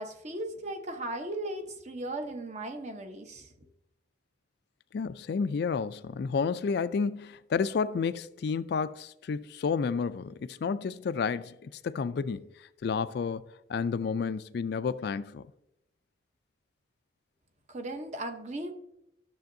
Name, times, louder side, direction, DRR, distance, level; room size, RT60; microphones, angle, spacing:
voice 1, 0.0-3.5 17.7-18.7, right 1 dB, 40° right, 0.9 m, -37 dB
voice 2, 4.9-13.4 13.7-15.5, left 5 dB, 60° left, 0.3 m, -31 dB
13.0 x 6.9 x 2.6 m
head